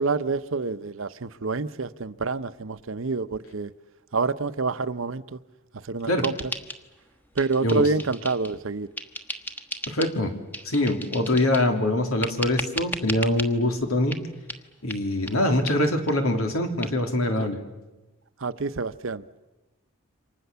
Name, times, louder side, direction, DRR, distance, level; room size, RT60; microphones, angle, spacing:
voice 1, 0.0-3.7 4.1-5.4 5.7-6.3 7.3-8.9 17.4-17.5 18.4-19.2, right 4 dB, 70° right, 0.8 m, -27 dB
sound 1, 6.2-7.1 7.4-8.6 9.0-10.2 10.5-11.7 12.2-13.5 14.1-14.2 14.5-14.6 14.9-15.0 15.3-15.4 15.7-15.8 16.1-16.2 16.4-16.5 16.8-16.9, equal, 10° left, 1.3 m, -35 dB
voice 2, 9.9-10.3 10.6-14.2 14.8-17.6, left 1 dB, 90° left, 3.2 m, -24 dB
28.5 x 25.0 x 7.0 m
head